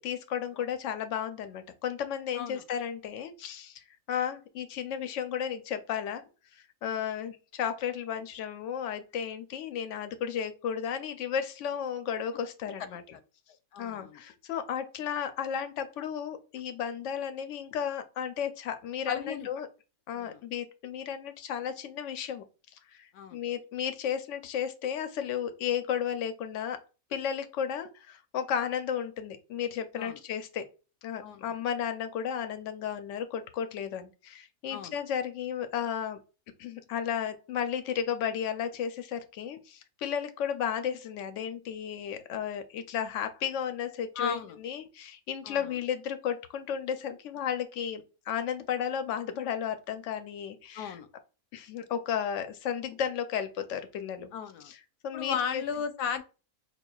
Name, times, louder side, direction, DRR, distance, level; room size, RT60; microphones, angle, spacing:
voice 1, 0.0-3.8 4.1-6.2 6.5-13.0 13.8-19.7 20.1-22.4 22.9-26.8 27.1-30.7 31.0-36.2 36.6-44.4 44.6-51.0 51.5-54.3 54.7-54.8 55.0-55.6, left 8 dB, 70° left, 0.7 m, -33 dB
voice 2, 13.7-14.2 19.1-19.5 20.1-20.4 23.1-23.4 30.0-30.2 31.2-31.6 34.7-35.0 44.2-44.6 45.4-45.8 50.7-51.1 54.3-54.7 55.1-56.2, left 7 dB, 90° left, 1.2 m, -35 dB
5.5 x 2.2 x 2.3 m
omnidirectional pair, 1.6 m